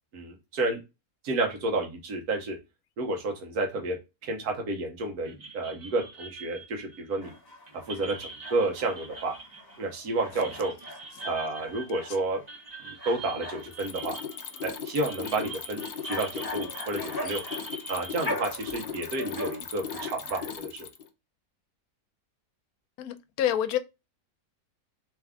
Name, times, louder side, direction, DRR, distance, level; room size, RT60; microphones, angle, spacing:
voice 1, 0.1-0.8 1.2-2.6 3.0-7.3 7.9-9.3 9.8-10.7 11.2-12.4 12.8-14.2 14.6-17.4 17.9-20.9, right 2 dB, 85° right, 1.4 m, -31 dB
sound 1, 5.2-18.3, right 3 dB, 35° right, 0.7 m, -44 dB
sound 2, 7.2-20.6, left 1 dB, 20° left, 0.9 m, -41 dB
Mechanisms, 13.6-21.1, left 7 dB, 60° left, 0.5 m, -37 dB
voice 2, 23.0-23.8, left 10 dB, 80° left, 1.1 m, -29 dB
3.5 x 3.4 x 3.4 m
omnidirectional pair, 1.6 m